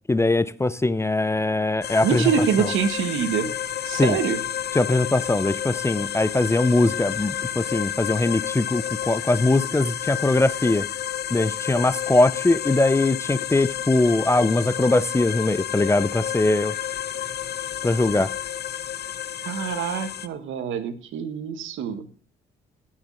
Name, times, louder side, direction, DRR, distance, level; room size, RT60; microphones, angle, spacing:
voice 1, 0.1-2.2 3.9-4.2 4.7-10.8 11.3-16.7 17.8-18.3, left 2 dB, 15° left, 0.5 m, -21 dB
sound 1, 1.8-20.3, left 10 dB, 55° left, 0.8 m, -31 dB
voice 2, 2.0-3.5 3.8-4.4 19.4-22.0, right 7 dB, 80° right, 1.5 m, -25 dB
14.0 x 6.5 x 6.2 m
cardioid pair, 90°, 20 cm